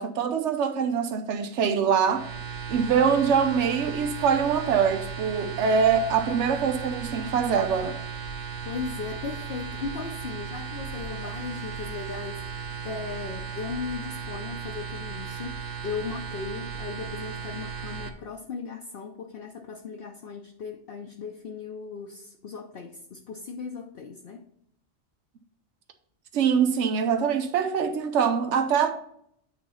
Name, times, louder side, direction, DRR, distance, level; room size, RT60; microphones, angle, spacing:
voice 1, 0.0-2.3 2.7-8.0 26.3-28.9, right 6 dB, 85° right, 1.0 m, -24 dB
sound 1, 2.1-18.1, right 6 dB, 55° right, 0.9 m, -36 dB
voice 2, 8.6-24.4, left 5 dB, 60° left, 0.8 m, -37 dB
8.7 x 2.9 x 5.5 m
omnidirectional pair, 1.2 m